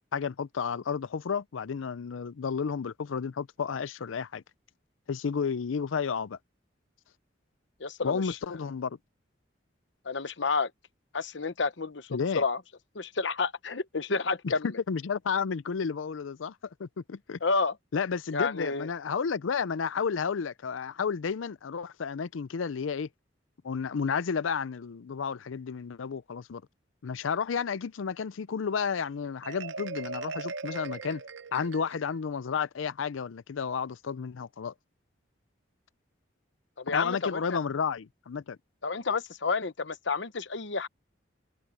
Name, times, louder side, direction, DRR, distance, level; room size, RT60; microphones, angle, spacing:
voice 1, 0.1-4.4 5.1-6.4 8.0-9.0 12.1-12.4 14.4-14.5 14.9-16.5 16.8-17.4 17.9-23.1 23.6-26.6 27.0-31.2 31.5-34.7 36.9-38.6, left 6 dB, 90° left, 0.5 m, -32 dB
voice 2, 7.8-8.4 10.0-10.7 11.1-12.6 12.9-14.8 17.4-17.8 18.3-18.9 36.8-37.6 38.8-40.9, left 4 dB, 70° left, 1.0 m, -30 dB
Marimba xylophone, 29.4-32.2, right 4 dB, 75° right, 0.7 m, -39 dB
head